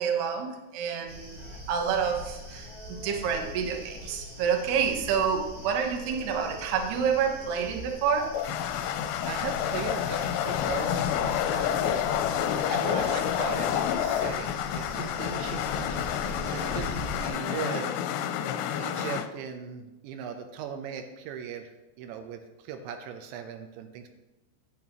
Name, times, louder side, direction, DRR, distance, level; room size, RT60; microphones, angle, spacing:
voice 1, 0.0-8.3, right 7 dB, 75° right, 3 dB, 3.0 m, -28 dB
sound 1, 1.1-17.3, left 1 dB, 35° right, 1.1 m, -42 dB
sound 2, 8.2-19.3, left 10 dB, 80° left, 2.6 m, -29 dB
voice 2, 8.8-12.4 12.7-16.0 16.4-18.1 18.8-24.1, right 7 dB, 90° right, 5 dB, 3.1 m, -39 dB
11.5 x 9.3 x 3.0 m, 1.0 s
omnidirectional pair, 5.1 m